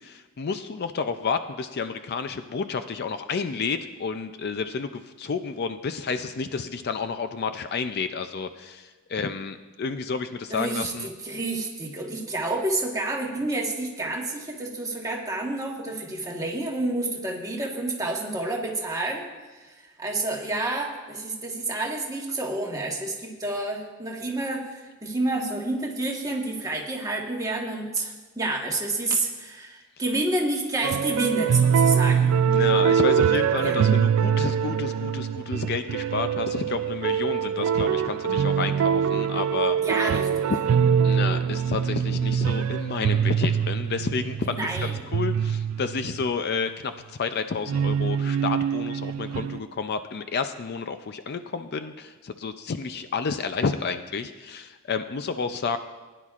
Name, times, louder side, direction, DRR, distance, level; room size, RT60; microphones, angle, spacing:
voice 1, 0.0-11.1 32.5-39.8 41.0-55.8, left 5 dB, 45° left, 9 dB, 0.4 m, -30 dB
voice 2, 10.5-32.3 33.6-33.8 39.8-40.4 44.4-45.0, right 2 dB, 15° right, -1 dB, 1.3 m, -29 dB
sound 1, 30.8-46.3 47.7-49.6, right 7 dB, 65° right, 0.3 m, -24 dB
19.0 x 9.9 x 2.4 m, 1.3 s
head